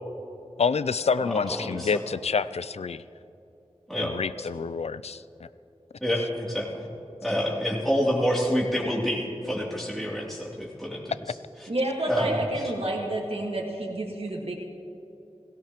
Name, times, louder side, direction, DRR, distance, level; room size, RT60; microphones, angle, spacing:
voice 1, 0.6-3.0 3.9-5.2, left 5 dB, 70° left, 16 dB, 0.4 m, -27 dB
voice 2, 1.2-1.9 3.9-4.1 6.0-6.9 7.2-11.0 12.1-12.4, equal, ahead, -6 dB, 2.9 m, -27 dB
voice 3, 11.7-14.6, right 1 dB, 60° right, -2 dB, 1.6 m, -29 dB
17.0 x 17.0 x 3.0 m, 2.8 s
wide cardioid pair, 45°, 11 cm